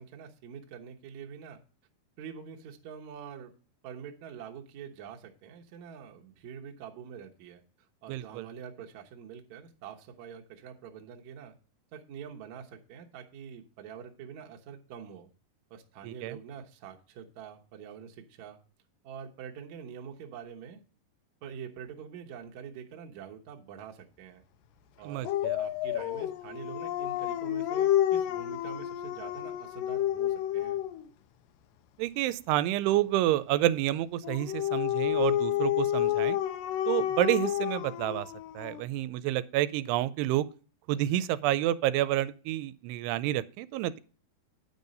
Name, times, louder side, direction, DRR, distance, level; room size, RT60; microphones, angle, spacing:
voice 1, 0.0-1.6 2.2-3.5 3.8-7.6 8.0-11.5 11.9-15.3 15.7-18.6 19.0-20.8 21.4-24.5 25.0-25.3 25.5-30.8, right 7 dB, 65° right, 1.9 m, -45 dB
voice 2, 8.1-8.5 16.0-16.3 25.1-25.6 32.0-36.4 36.9-38.3 38.6-40.5 40.9-44.0, right 14 dB, 90° right, 2.6 m, -29 dB
Dog, 25.2-31.1 34.2-38.8, left 12 dB, 85° left, 1.9 m, -30 dB
9.5 x 5.4 x 5.2 m
omnidirectional pair, 4.6 m